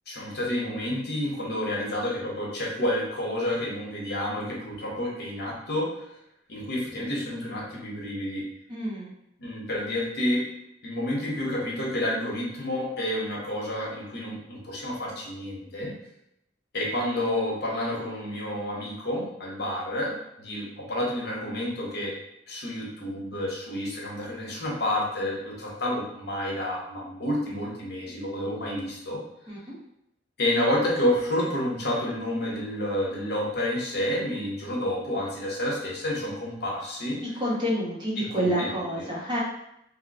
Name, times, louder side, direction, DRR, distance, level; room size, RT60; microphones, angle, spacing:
voice 1, 0.1-5.9 6.5-8.4 9.4-10.4 10.8-15.9 16.7-22.1 22.5-29.2 30.4-37.2 38.2-39.1, left 1 dB, 60° left, -3 dB, 0.9 m, -29 dB
voice 2, 8.7-9.1 29.5-29.8 37.4-39.4, equal, 25° right, -5 dB, 0.8 m, -28 dB
2.7 x 2.1 x 4.0 m, 0.81 s
head